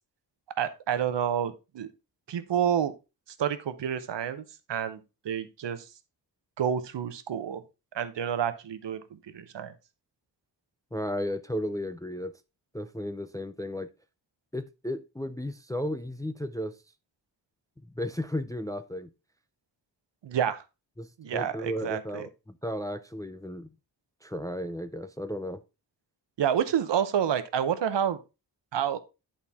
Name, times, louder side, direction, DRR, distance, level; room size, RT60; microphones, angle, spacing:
voice 1, 0.6-1.9 2.3-2.9 3.4-5.8 6.6-7.6 7.9-9.0 9.3-9.7 20.2-20.6 21.2-22.2 26.4-28.2 28.7-29.0, right 9 dB, 85° right, 0.8 m, -29 dB
voice 2, 10.9-12.3 12.7-13.9 14.5-16.7 18.0-19.1 21.0-23.7 24.2-25.6, equal, 10° left, 0.3 m, -34 dB
10.5 x 4.3 x 3.5 m
wide cardioid pair, 180°, 42 cm